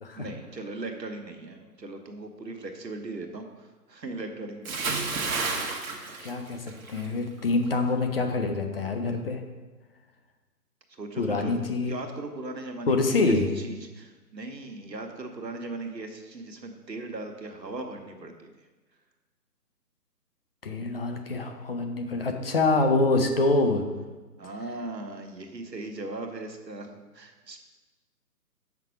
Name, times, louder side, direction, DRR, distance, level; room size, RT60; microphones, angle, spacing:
voice 1, 0.1-4.9 10.9-11.5 11.8-18.5 24.4-26.9 27.1-27.6, right 2 dB, 90° right, 4 dB, 1.3 m, -38 dB
Bathtub (filling or washing) / Splash splatter, 4.6-7.1 7.4-7.7, right 4 dB, 55° right, 1.3 m, -31 dB
voice 2, 6.2-9.4 11.2-12.0 12.9-13.5 20.6-23.8, left 3 dB, 35° left, 5 dB, 0.7 m, -25 dB
7.1 x 5.9 x 4.8 m, 1.2 s
figure-of-eight pair, 145°, 49 cm